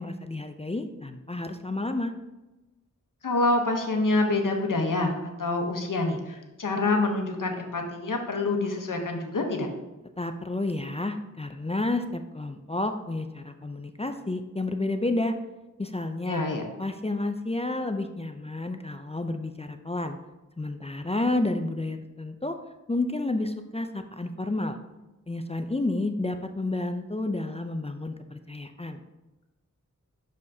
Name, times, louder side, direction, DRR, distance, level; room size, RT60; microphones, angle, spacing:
voice 1, 0.0-2.1 10.2-15.3 15.8-16.4 16.8-20.2 20.6-22.6 22.9-24.8 25.3-29.0, left 2 dB, 20° left, 6 dB, 0.4 m, -30 dB
voice 2, 3.2-9.7 16.2-16.6, left 2 dB, 85° left, 3 dB, 0.9 m, -26 dB
6.4 x 5.4 x 2.7 m, 1.0 s
wide cardioid pair, 45°, 31 cm